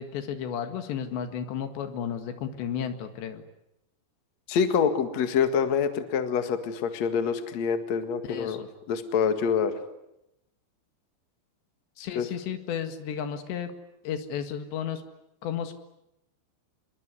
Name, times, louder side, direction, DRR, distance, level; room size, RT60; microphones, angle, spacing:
voice 1, 0.0-3.4 8.3-8.7 12.0-13.7 14.0-15.0 15.4-15.7, left 8 dB, 85° left, 8 dB, 4.1 m, -33 dB
voice 2, 4.5-9.7 12.2-12.3, left 6 dB, 50° left, 8 dB, 2.5 m, -26 dB
27.0 x 22.0 x 9.8 m, 0.84 s
omnidirectional pair, 4.9 m